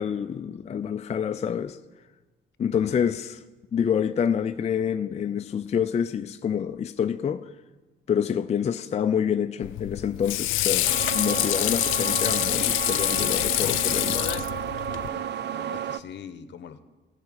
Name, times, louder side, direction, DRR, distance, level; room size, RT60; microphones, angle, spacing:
voice 1, 0.0-1.8 2.6-3.4 3.7-7.6 8.1-14.3, left 8 dB, 35° left, 0.4 m, -27 dB
Water / Sink (filling or washing), 9.6-15.1, left 15 dB, 85° left, 0.5 m, -26 dB
sound 1, 10.8-16.0, right 10 dB, 60° right, 0.4 m, -32 dB
voice 2, 15.1-16.9, left 8 dB, 65° left, 0.9 m, -43 dB
14.5 x 5.7 x 8.9 m
cardioid pair, 90°, 20 cm